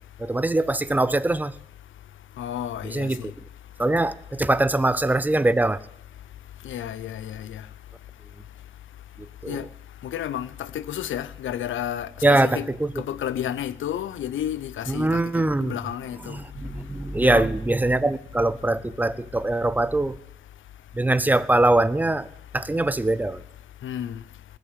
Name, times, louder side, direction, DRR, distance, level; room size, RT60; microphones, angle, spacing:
voice 1, 0.2-1.5 2.8-3.3 3.8-5.8 9.4-9.7 12.2-12.9 14.9-15.8 16.2-20.2 20.9-22.3 22.5-23.4, right 2 dB, 10° right, 0.5 m, -22 dB
voice 2, 2.4-3.3 6.6-7.6 9.5-9.6 10.0-12.7 13.0-15.2 15.6-16.4 17.2-17.5 23.8-24.2, left 10 dB, 85° left, 0.7 m, -31 dB
20.0 x 6.6 x 8.3 m
wide cardioid pair, 130°, 20 cm